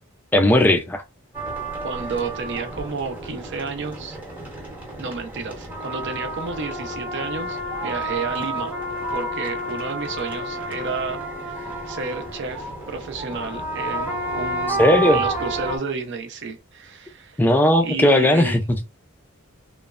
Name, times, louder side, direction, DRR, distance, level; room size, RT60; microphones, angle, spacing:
voice 1, 0.3-1.0 14.7-15.2 17.4-18.8, left 1 dB, 10° left, 0.3 m, -17 dB
sound 1, 1.3-15.8, right 1 dB, 10° right, 0.8 m, -30 dB
voice 2, 1.8-4.2 5.0-8.8 9.1-14.8 15.1-17.4 17.8-18.6, right 4 dB, 60° right, 0.6 m, -31 dB
3.0 x 2.1 x 2.4 m
head